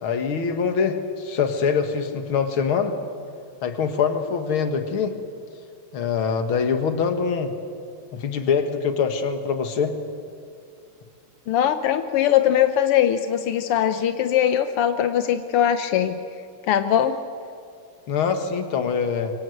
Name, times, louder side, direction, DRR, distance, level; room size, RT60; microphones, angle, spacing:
voice 1, 0.0-3.0 3.6-5.2 5.9-7.5 8.1-9.9 18.1-19.3, left 6 dB, 70° left, 7 dB, 2.6 m, -24 dB
voice 2, 11.5-16.2 16.7-17.2, left 10 dB, 85° left, 9 dB, 1.9 m, -21 dB
26.5 x 25.0 x 8.0 m, 2.3 s
omnidirectional pair, 2.4 m